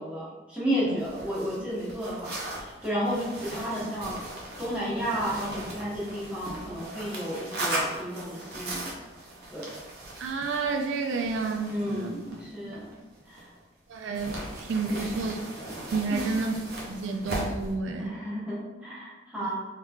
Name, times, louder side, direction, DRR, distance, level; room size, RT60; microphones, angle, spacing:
voice 1, 0.0-4.2 4.6-8.9 9.5-9.7 11.7-12.9 13.3-13.5 14.9-15.1 16.1-16.3 18.0-19.6, equal, 5° right, -9 dB, 1.1 m, -32 dB
sound 1, 1.0-13.6 14.1-17.7, right 1 dB, 55° right, 0.7 m, -38 dB
voice 2, 10.2-12.1 12.4-12.7 13.9-15.3 15.9-16.5 16.9-18.2, right 4 dB, 80° right, 3 dB, 0.3 m, -30 dB
3.6 x 3.2 x 2.3 m, 1.2 s
head